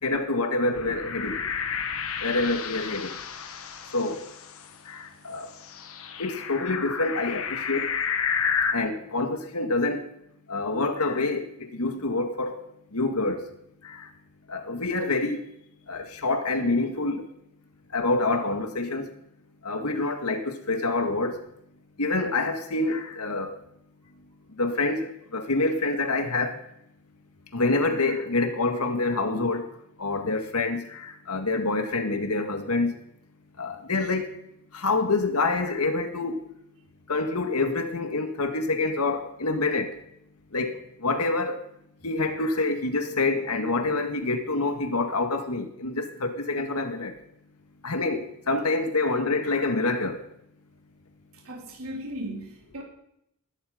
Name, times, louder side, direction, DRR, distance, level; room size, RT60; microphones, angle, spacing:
voice 1, 0.0-1.5 2.2-3.2 3.9-4.3 4.9-5.5 6.2-8.0 8.7-10.1 10.5-12.6 12.9-13.4 13.8-14.1 14.5-15.4 15.9-17.3 17.9-19.2 19.6-21.4 22.0-23.6 24.6-26.6 27.5-29.7 30.0-32.9 33.6-34.4 34.7-36.4 37.1-40.0 40.5-41.6 42.0-47.1 47.8-50.2, left 3 dB, 85° left, 6 dB, 1.9 m, -27 dB
sound 1, 0.7-4.7 5.6-8.7, left 6 dB, 65° left, 1.4 m, -31 dB
voice 2, 51.4-52.8, right 1 dB, 70° right, -2 dB, 4.1 m, -36 dB
20.0 x 11.5 x 5.1 m, 0.77 s
head